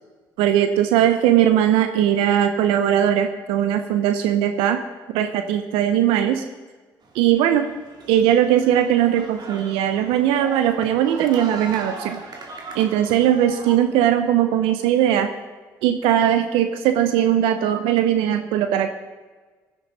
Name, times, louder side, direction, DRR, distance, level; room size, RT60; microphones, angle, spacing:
voice 1, 0.4-4.8 5.1-6.4 7.1-7.7 8.1-12.2 12.7-15.3 15.8-18.9, right 10 dB, 75° right, 9 dB, 0.8 m, -19 dB
sound 1, 7.0-13.8, right 3 dB, 45° right, 2.7 m, -39 dB
16.0 x 11.5 x 4.1 m, 1.3 s
hypercardioid pair, 55°, 10 cm